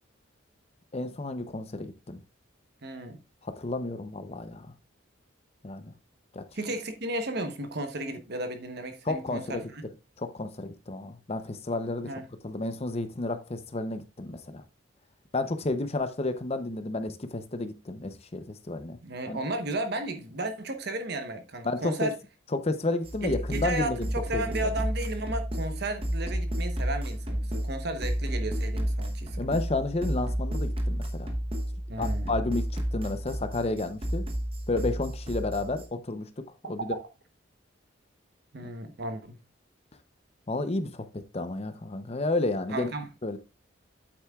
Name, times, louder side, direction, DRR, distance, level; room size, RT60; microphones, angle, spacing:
voice 1, 0.9-2.2 3.4-4.7 5.6-5.9 6.3-6.4 9.0-9.6 10.2-12.1 12.4-14.6 15.3-19.0 19.2-19.4 21.6-22.1 22.5-24.1 24.3-24.7 29.4-31.3 32.0-34.2 34.7-36.3 36.7-37.0 40.5-41.0 41.3-42.9 43.2-43.4, left 2 dB, 30° left, 0.7 m, -31 dB
voice 2, 2.8-3.2 6.5-9.8 12.0-12.2 19.0-22.1 23.2-29.4 31.9-32.3 36.8-36.9 38.5-39.4 42.7-43.1, right 2 dB, 55° right, 1.0 m, -34 dB
sound 1, 23.0-35.9, equal, 30° right, 1.0 m, -31 dB
8.8 x 8.0 x 2.4 m
head